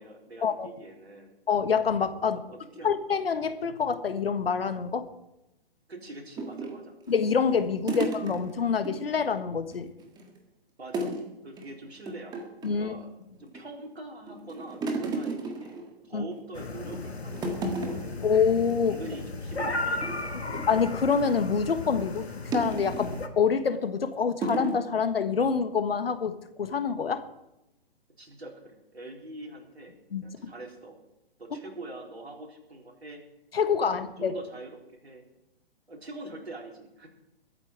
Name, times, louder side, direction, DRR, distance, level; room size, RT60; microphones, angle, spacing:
voice 1, 0.0-1.4 2.2-2.9 5.9-7.0 10.8-11.2 11.4-12.4 12.8-13.1 13.4-18.3 18.8-20.7 28.2-30.0 30.2-31.0 31.4-33.3 33.8-35.2 35.9-37.1, right 2 dB, 80° right, 0 dB, 4.1 m, -44 dB
voice 2, 1.5-2.4 2.8-5.1 7.1-9.9 12.6-13.0 16.1-16.2 18.2-19.0 20.5-22.3 22.5-27.2 30.1-30.3 33.5-34.3, left 6 dB, 70° left, 10 dB, 1.4 m, -26 dB
sound 1, 6.4-9.0 9.3-9.4 9.7-10.4 10.9-11.3 11.6-11.7 12.1-12.9 13.4-13.9 14.3-16.4 16.8-17.1 17.3-18.2 18.6-18.7 19.0-19.2 19.7-21.5 22.5-23.2 23.8-24.0 24.4-24.8, right 2 dB, 15° right, 1.6 m, -34 dB
sound 2, 16.5-23.3, left 2 dB, 85° left, 1.6 m, -35 dB
22.5 x 8.9 x 4.6 m, 0.89 s
figure-of-eight pair, 130°, 31 cm